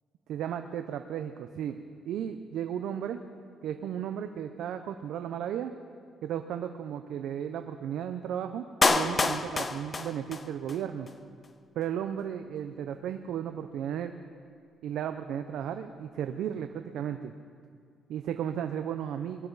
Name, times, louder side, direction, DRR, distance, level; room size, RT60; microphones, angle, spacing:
voice 1, 0.3-1.8 2.0-3.2 3.6-5.7 6.2-11.1 11.7-14.2 14.8-17.3 18.1-19.5, right 9 dB, 80° right, 8 dB, 0.6 m, -34 dB
Clapping, 8.8-10.8 11.1-11.2, left 3 dB, 30° left, 0.9 m, -27 dB
21.5 x 12.0 x 4.0 m, 2.2 s
cardioid pair, 90°, 0 cm